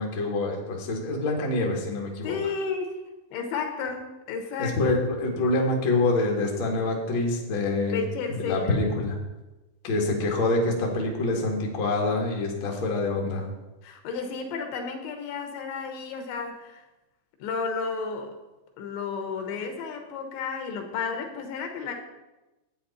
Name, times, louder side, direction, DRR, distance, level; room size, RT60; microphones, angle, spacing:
voice 1, 0.0-2.4 4.6-8.0 8.3-9.2 9.8-13.5, left 2 dB, 55° left, -1 dB, 1.3 m, -26 dB
voice 2, 2.2-3.0 3.3-5.0 7.9-8.8 13.8-16.8 17.4-18.4 18.8-21.9, left 5 dB, 85° left, 4 dB, 3.5 m, -32 dB
11.0 x 8.8 x 4.2 m, 1.0 s
omnidirectional pair, 5.1 m